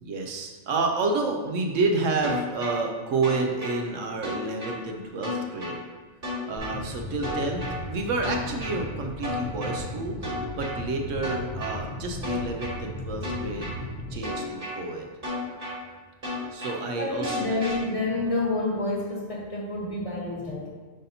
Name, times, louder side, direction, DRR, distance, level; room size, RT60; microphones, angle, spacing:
voice 1, 0.0-5.8 6.4-13.7 14.1-15.1 16.5-17.6, right 3 dB, 80° right, 2 dB, 1.1 m, -29 dB
sound 1, 2.2-2.8 3.2-3.8 4.2-4.8 5.2-5.8 6.2-6.8 7.2-7.8 8.2-8.8 9.2-9.8 10.2-10.8 11.2-11.8 12.2-12.8 13.2-13.8 14.2-14.8 15.2-15.8 16.2-16.8 17.2-17.8, equal, 45° right, 2.0 m, -33 dB
sound 2, 6.6-14.2, left 1 dB, 85° left, 1.8 m, -36 dB
voice 2, 17.0-20.7, left 2 dB, 30° left, -3 dB, 1.2 m, -28 dB
9.9 x 4.1 x 2.7 m, 1.3 s
omnidirectional pair, 1.3 m